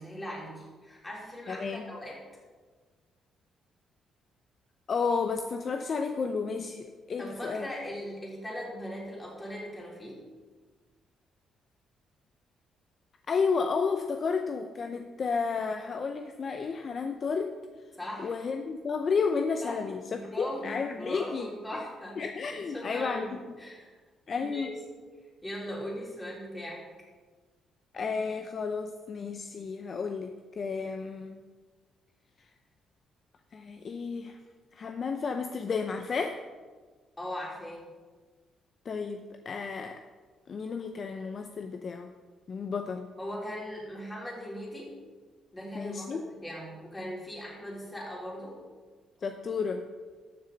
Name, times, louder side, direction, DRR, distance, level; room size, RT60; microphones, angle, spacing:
voice 1, 0.0-2.2 7.2-10.2 18.0-18.3 19.6-19.8 20.1-22.2 22.5-24.0 24.4-25.0 25.4-26.8 37.2-37.8 43.2-45.0 45.5-48.6, equal, 15° left, -4 dB, 3.6 m, -39 dB
voice 2, 1.5-1.8 4.9-7.7 13.3-17.5 18.2-21.5 22.2-23.4 24.3-24.7 27.9-31.4 33.5-34.4 34.7-36.4 38.9-40.0 40.5-42.1 42.5-43.1 45.7-46.2 49.2-49.8, left 5 dB, 45° left, 6 dB, 0.6 m, -32 dB
13.5 x 6.6 x 4.0 m, 1.4 s
cardioid pair, 90°, 0 cm